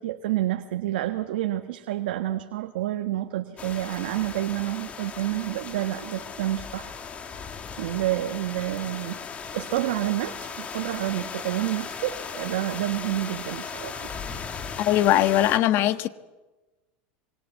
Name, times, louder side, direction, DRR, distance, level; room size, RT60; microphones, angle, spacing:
voice 1, 0.0-6.9 7.8-9.2 9.5-14.1, right 14 dB, 85° right, 1.3 m, -29 dB
sound 1, 3.6-15.6, left 6 dB, 25° left, 2.4 m, -37 dB
voice 2, 14.8-16.1, left 13 dB, 50° left, 1.3 m, -20 dB
26.0 x 24.0 x 8.2 m
supercardioid pair, 130°, 5 cm